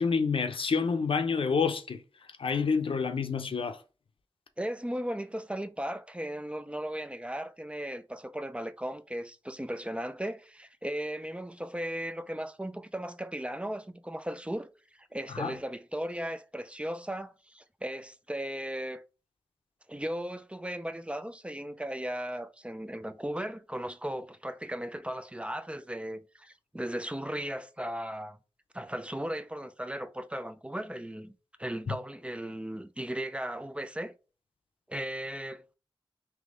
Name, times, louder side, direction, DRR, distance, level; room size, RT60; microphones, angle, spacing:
voice 1, 0.0-2.0 2.4-3.8 15.3-15.5, left 5 dB, 75° left, 0.6 m, -28 dB
voice 2, 4.6-19.0 19.9-28.4 28.7-31.3 31.6-34.1 34.9-35.6, right 1 dB, 15° right, 0.4 m, -36 dB
3.4 x 3.0 x 3.7 m
wide cardioid pair, 60°, 9 cm